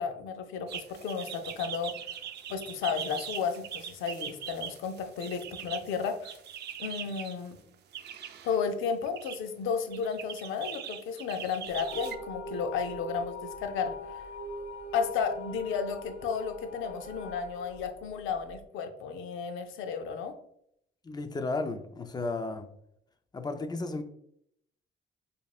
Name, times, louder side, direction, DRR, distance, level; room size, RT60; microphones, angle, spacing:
voice 1, 0.0-2.0 2.5-6.3 6.8-7.6 8.4-14.3 14.9-20.3, left 6 dB, 90° left, 0.5 m, -33 dB
sound 1, 0.7-7.4 7.9-8.6 9.0-9.4 9.9-12.2, right 9 dB, 60° right, 0.4 m, -41 dB
sound 2, 11.7-18.6, left 1 dB, 70° left, 1.4 m, -41 dB
voice 2, 21.0-22.7 23.3-24.0, left 3 dB, 20° left, 0.5 m, -33 dB
5.2 x 2.5 x 2.4 m
cardioid pair, 90°, 20 cm